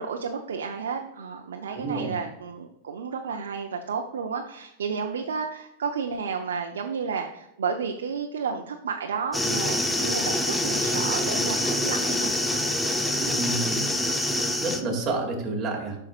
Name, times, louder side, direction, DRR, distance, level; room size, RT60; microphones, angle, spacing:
voice 1, 0.0-12.3, right 6 dB, 85° right, 3 dB, 0.6 m, -32 dB
voice 2, 1.7-2.1 13.2-14.0 14.6-16.0, right 2 dB, 30° right, -1 dB, 2.3 m, -29 dB
sound 1, 9.3-14.8, left 1 dB, 5° left, 0.7 m, -26 dB
10.5 x 6.3 x 2.4 m, 0.87 s
hypercardioid pair, 120°, 0 cm